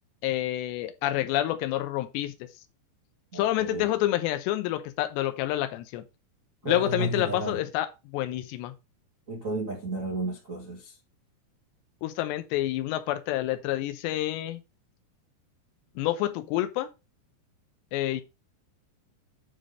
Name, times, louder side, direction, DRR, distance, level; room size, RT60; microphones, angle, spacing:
voice 1, 0.2-2.3 3.3-6.0 6.6-8.8 12.0-14.6 16.0-16.9 17.9-18.2, left 14 dB, 80° left, 3.0 m, -28 dB
voice 2, 3.3-3.9 6.6-7.6 9.3-10.9, right 2 dB, 50° right, 0.9 m, -32 dB
9.6 x 3.9 x 5.1 m
omnidirectional pair, 5.0 m